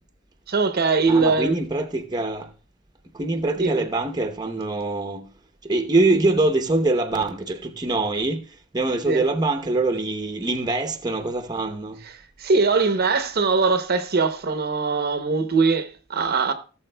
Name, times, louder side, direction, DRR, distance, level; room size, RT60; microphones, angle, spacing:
voice 1, 0.5-1.6 3.6-3.8 9.1-9.2 12.4-16.5, right 4 dB, 50° right, 0.7 m, -21 dB
voice 2, 1.1-2.5 3.1-5.3 5.6-8.5 8.7-12.0, right 2 dB, 20° right, 0.8 m, -24 dB
16.0 x 7.2 x 2.2 m
head